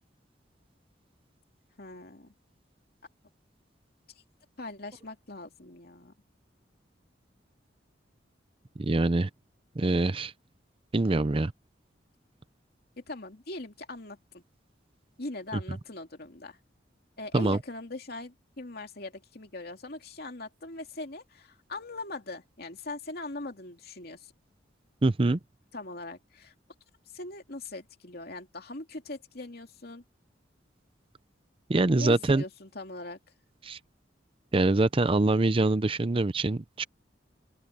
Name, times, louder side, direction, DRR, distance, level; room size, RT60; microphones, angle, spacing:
voice 1, 1.8-2.3 4.6-6.1 13.0-14.4 15.2-16.6 17.2-24.3 25.7-26.5 27.1-30.0 32.0-33.2, left 2 dB, 55° left, 2.7 m, -41 dB
voice 2, 8.8-9.3 9.8-10.3 10.9-11.5 17.3-17.6 25.0-25.4 31.7-32.4 33.6-33.8 34.5-36.8, right 2 dB, 30° right, 0.6 m, -24 dB
open air
head